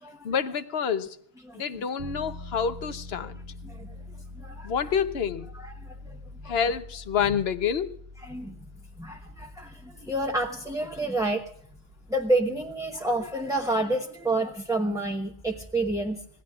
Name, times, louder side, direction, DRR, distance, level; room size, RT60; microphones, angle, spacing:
voice 1, 0.2-1.2 1.5-3.4 4.6-5.5 6.4-8.0, left 7 dB, 70° left, 1.1 m, -28 dB
sound 1, 2.0-13.9, left 2 dB, 85° right, 1.6 m, -45 dB
voice 2, 3.6-3.9 4.3-4.7 5.5-6.5 8.2-8.5 9.0-11.4 12.1-16.2, right 2 dB, 5° right, 1.0 m, -29 dB
26.5 x 18.5 x 2.4 m
omnidirectional pair, 1.1 m